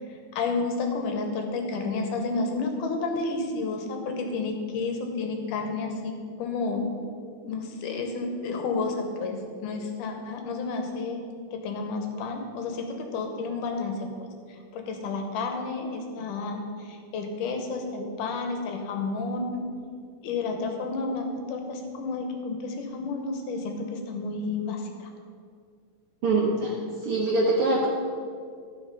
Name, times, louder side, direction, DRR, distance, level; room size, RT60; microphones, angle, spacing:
voice 1, 0.3-6.9 7.4-11.2 11.5-14.1 14.5-19.7 20.2-25.1, left 3 dB, 75° left, 4 dB, 2.6 m, -31 dB
voice 2, 26.2-27.9, right 2 dB, 80° right, -2 dB, 1.2 m, -24 dB
13.0 x 6.1 x 5.4 m, 2.2 s
omnidirectional pair, 3.8 m